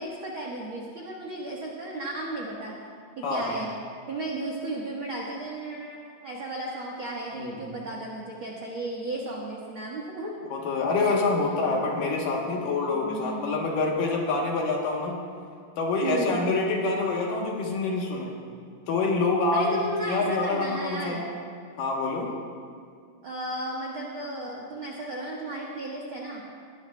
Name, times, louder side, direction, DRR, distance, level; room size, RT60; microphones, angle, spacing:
voice 1, 0.0-2.7 3.2-3.7 4.1-10.3 11.4-11.6 12.9-13.6 16.0-16.5 19.5-21.2 23.2-26.4, right 2 dB, 55° right, -4 dB, 1.5 m, -34 dB
voice 2, 10.5-15.2 15.8-18.3 18.9-21.2 21.8-22.4, left 3 dB, 70° left, -1 dB, 2.7 m, -26 dB
19.5 x 17.0 x 2.3 m, 2.3 s
omnidirectional pair, 4.2 m